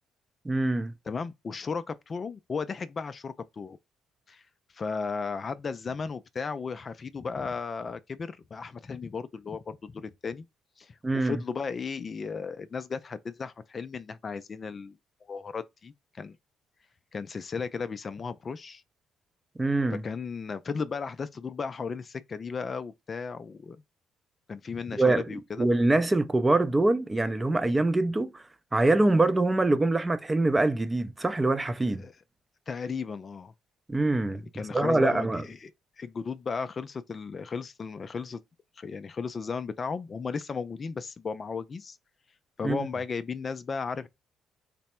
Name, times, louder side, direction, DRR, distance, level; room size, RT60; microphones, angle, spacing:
voice 1, 0.4-0.9 11.0-11.3 19.6-20.0 25.0-25.2 25.6-28.4 28.7-32.0 33.9-34.4 34.7-35.4 42.6-42.9, right 2 dB, 20° right, 0.5 m, -24 dB
voice 2, 1.1-3.8 4.3-4.4 4.7-10.4 10.8-15.0 15.3-16.4 17.1-18.8 20.0-23.8 24.5-25.7 32.0-32.1 32.7-33.5 34.5-35.7 36.0-38.4 38.8-42.0 42.6-44.1, left 5 dB, 40° left, 0.4 m, -35 dB
3.3 x 2.0 x 4.2 m
supercardioid pair, 75°, 0 cm